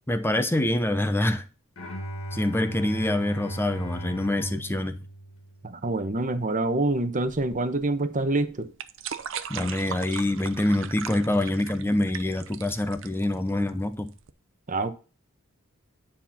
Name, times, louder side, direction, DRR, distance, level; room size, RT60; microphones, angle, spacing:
voice 1, 0.1-1.4 2.3-5.0 9.5-14.1, left 1 dB, 10° left, 0.8 m, -25 dB
Bowed string instrument, 1.8-5.9, right 1 dB, 80° left, 2.2 m, -37 dB
voice 2, 5.6-8.7 14.7-14.9, right 2 dB, 40° right, 1.0 m, -26 dB
sound 1, 7.3-14.3, right 8 dB, 65° right, 0.7 m, -39 dB
9.8 x 4.4 x 5.8 m
head